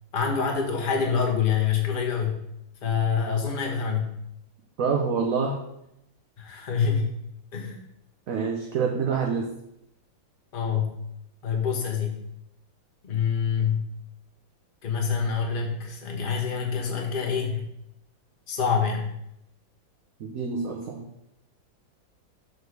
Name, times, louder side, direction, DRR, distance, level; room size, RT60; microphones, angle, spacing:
voice 1, 0.1-2.3 2.8-4.1 6.4-7.1 7.5-7.8 10.5-10.9 11.4-12.2 13.0-13.8 14.8-17.6 18.5-19.1, left 6 dB, 30° left, 1 dB, 1.1 m, -26 dB
voice 2, 4.8-5.6 8.3-9.5 20.2-21.0, right 5 dB, 55° right, 1 dB, 1.0 m, -26 dB
6.4 x 5.0 x 4.7 m, 0.80 s
omnidirectional pair, 2.1 m